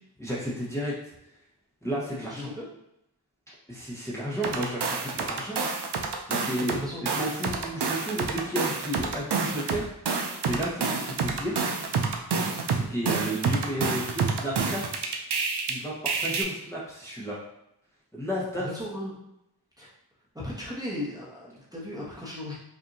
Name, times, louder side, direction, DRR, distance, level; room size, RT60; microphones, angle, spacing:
voice 1, 0.2-1.1 1.8-2.5 3.7-5.7 6.3-6.7 7.1-9.9 10.4-11.6 12.7-14.8 15.6-17.4 18.1-18.7, equal, 5° left, -8 dB, 1.1 m, -32 dB
voice 2, 2.3-2.7 5.3-5.6 6.7-7.2 18.6-19.1 19.8-19.9 20.3-22.5, left 1 dB, 10° right, -7 dB, 1.2 m, -36 dB
sound 1, 4.4-6.8 7.1-15.7 16.1-16.4, right 5 dB, 75° right, 0.6 m, -28 dB
5.2 x 2.6 x 2.7 m, 0.84 s
wide cardioid pair, 60°, 41 cm